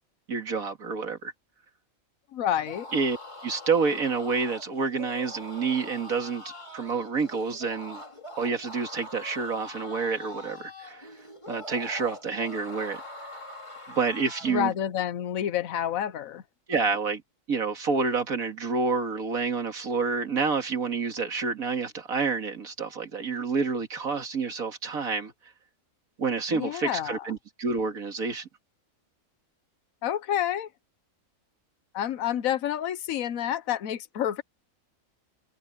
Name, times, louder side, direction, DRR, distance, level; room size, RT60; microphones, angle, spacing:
voice 1, 0.3-1.3 2.9-3.2 3.4-8.0 8.4-11.1 11.5-13.0 13.9-14.7 16.7-17.2 17.5-25.3 26.2-28.5, right 5 dB, 80° right, 2.6 m, -28 dB
voice 2, 2.3-2.9 14.5-16.4 26.5-27.2 30.0-30.7 31.9-34.4, left 10 dB, 80° left, 1.3 m, -29 dB
sound 1, 2.5-14.6, left 1 dB, 20° left, 2.8 m, -43 dB
omnidirectional pair, 1.4 m